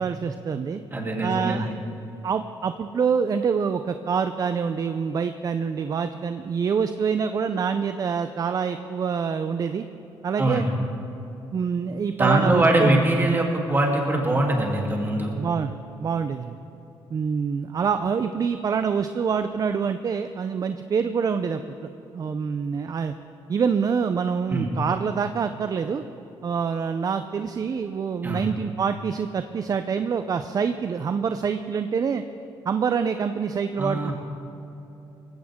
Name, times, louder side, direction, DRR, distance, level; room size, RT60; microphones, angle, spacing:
voice 1, 0.0-0.8 1.2-1.7 2.2-9.9 10.2-10.7 11.5-13.0 15.3-15.7 16.0-16.6 17.1-21.6 22.1-23.1 23.5-26.0 26.4-32.2 32.7-34.1, right 6 dB, 40° right, 9 dB, 0.6 m, -26 dB
voice 2, 0.9-1.7 10.4-10.7 12.2-15.4 24.5-24.7 28.2-28.4 33.8-34.1, right 1 dB, 20° right, -1 dB, 3.1 m, -22 dB
19.0 x 16.0 x 3.7 m, 2.9 s
cardioid pair, 85°, 9 cm